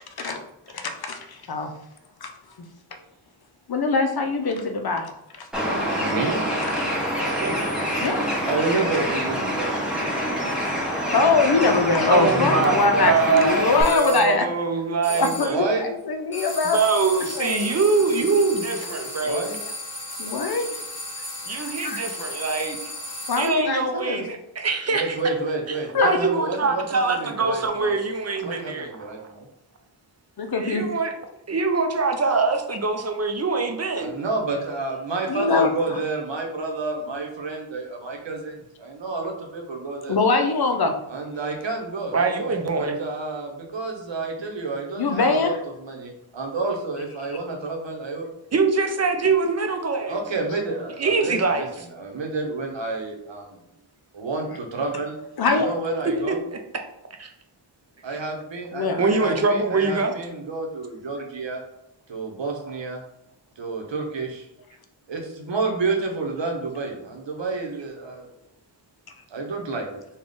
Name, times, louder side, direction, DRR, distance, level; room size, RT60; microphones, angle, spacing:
voice 1, 0.7-1.7 2.2-2.3 3.7-5.1 5.4-5.5 5.9-6.1 6.5-6.8 8.0-8.5 11.1-14.5 15.1-16.8 17.3-17.7 20.2-20.8 21.5-22.0 23.3-24.3 25.9-26.2 30.4-30.9 35.3-36.0 40.1-40.9 45.0-45.6 55.4-55.7 58.7-59.0, left 3 dB, 55° left, 6 dB, 0.6 m, -23 dB
Bird, 5.5-13.8, equal, ahead, 0.9 m, -26 dB
voice 2, 6.0-6.4 8.3-9.7 15.4-15.9 19.2-19.6 24.9-28.0 28.4-29.5 34.0-40.2 41.1-45.5 45.8-48.3 50.0-53.6 54.1-55.1 55.5-56.4 58.0-61.6 62.1-63.0 63.6-64.5 65.1-68.3 69.3-70.0, right 3 dB, 75° right, 1 dB, 0.9 m, -29 dB
voice 3, 12.1-15.6 16.6-19.5 21.5-22.8 23.4-25.2 25.7-25.8 26.0-29.3 30.6-31.1 31.5-34.1 42.1-43.0 48.5-50.2 51.0-51.7 56.3-56.6 57.2-57.3 59.0-60.1, right 4 dB, 35° right, 5 dB, 0.5 m, -23 dB
sound 1, 13.8-14.3 15.0-15.7 16.3-23.7, left 1 dB, 25° left, 1.2 m, -35 dB
3.5 x 2.3 x 3.7 m, 0.84 s
wide cardioid pair, 90°, 45 cm